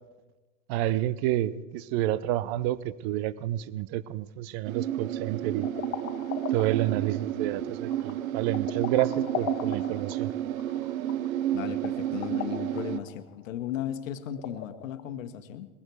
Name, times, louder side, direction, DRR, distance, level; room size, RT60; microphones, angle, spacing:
voice 1, 0.7-5.7 6.5-10.3, right 13 dB, 50° right, 19 dB, 0.7 m, -29 dB
sound 1, 4.7-13.0, right 12 dB, 90° right, 0.7 m, -31 dB
sound 2, 5.5-15.0, left 9 dB, 35° left, 1.4 m, -40 dB
voice 2, 11.5-15.7, left 10 dB, 75° left, 10 dB, 1.3 m, -36 dB
20.0 x 14.5 x 4.7 m, 1.2 s
hypercardioid pair, 120°, 40 cm